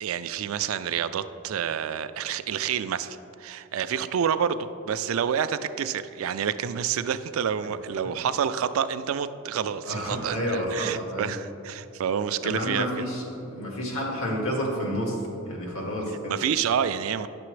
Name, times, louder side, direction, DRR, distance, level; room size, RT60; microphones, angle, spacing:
voice 1, 0.0-13.0 16.3-17.3, right 8 dB, 75° right, 12 dB, 0.3 m, -28 dB
voice 2, 9.9-11.3 12.4-15.2 15.5-16.4, equal, 85° left, -1 dB, 1.7 m, -30 dB
9.6 x 6.8 x 3.2 m, 2.8 s
head